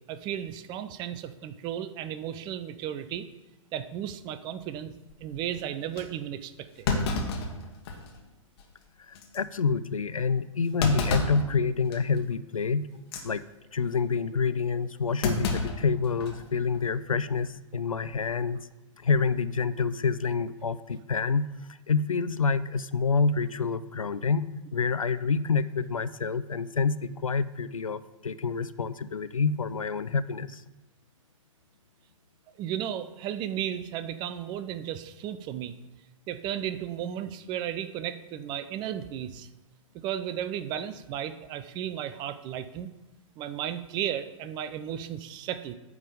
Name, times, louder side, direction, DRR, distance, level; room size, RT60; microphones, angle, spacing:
voice 1, 0.1-3.3 3.7-4.9 5.2-7.0 32.6-35.8 36.3-39.5 40.0-42.9 43.4-45.7, right 10 dB, 25° right, 12 dB, 0.5 m, -34 dB
Thump thud, 5.1-5.4 6.0-6.1 6.8-8.2 8.6-8.7 9.1-9.4 10.8-11.5 11.9-12.2 13.0-13.3 15.2-16.4 16.7-16.8 18.0-18.3, left 3 dB, 50° left, 1.3 m, -30 dB
voice 2, 9.1-12.9 13.2-13.4 13.7-18.6 19.0-21.5 21.9-30.6, left 5 dB, 90° left, 14 dB, 0.4 m, -27 dB
9.4 x 3.6 x 6.7 m, 1.0 s
figure-of-eight pair, 115°, 17 cm